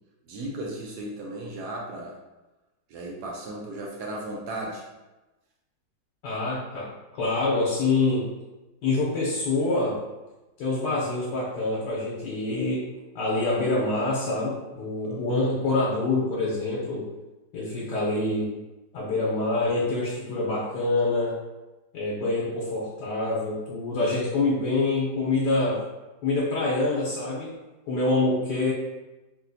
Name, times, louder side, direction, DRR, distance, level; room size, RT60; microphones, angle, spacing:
voice 1, 0.3-2.2 2.9-4.8 15.0-15.2, right 1 dB, 70° right, -1 dB, 1.0 m, -35 dB
voice 2, 6.2-8.3 8.8-10.0 10.6-12.9 13.1-17.1 17.5-18.5 18.9-21.4 21.9-25.8 26.2-27.5 27.9-28.7, left 2 dB, 70° left, -5 dB, 1.3 m, -26 dB
3.2 x 2.8 x 2.6 m, 1.1 s
omnidirectional pair, 1.9 m